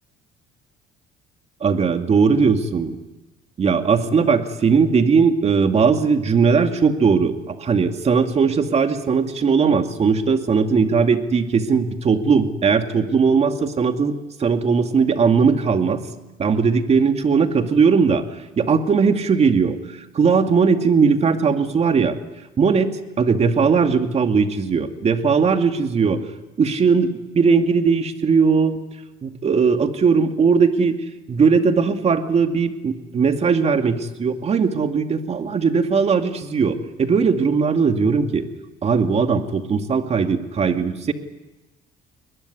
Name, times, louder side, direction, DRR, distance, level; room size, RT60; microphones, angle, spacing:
voice 1, 1.6-3.0 3.6-16.0 16.4-18.2 18.6-19.8 20.1-22.2 22.6-22.9 23.2-26.2 26.6-28.8 29.2-31.0 31.3-38.4 38.8-41.1, right 5 dB, 40° right, 7 dB, 2.3 m, -19 dB
21.5 x 21.0 x 9.8 m, 1.1 s
cardioid pair, 110°, 17 cm